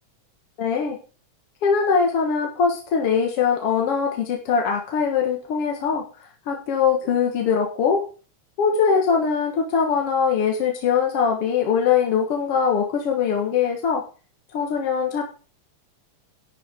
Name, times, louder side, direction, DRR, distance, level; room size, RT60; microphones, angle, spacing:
voice 1, 0.6-1.0 1.6-6.0 6.5-8.0 8.6-14.0 14.5-15.2, left 6 dB, 55° left, 1 dB, 2.2 m, -22 dB
11.5 x 10.0 x 3.6 m, 0.35 s
omnidirectional pair, 3.3 m